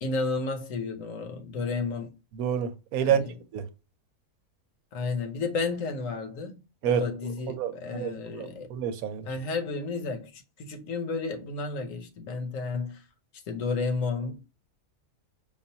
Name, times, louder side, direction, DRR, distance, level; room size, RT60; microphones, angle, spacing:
voice 1, 0.0-2.1 3.0-3.3 4.9-6.6 6.8-8.7 9.2-13.0 13.5-14.5, left 4 dB, 70° left, 1.1 m, -32 dB
voice 2, 2.4-3.2 3.5-3.7 6.8-7.1 7.5-9.3, right 9 dB, 85° right, 1.1 m, -28 dB
5.2 x 2.4 x 2.7 m
omnidirectional pair, 1.5 m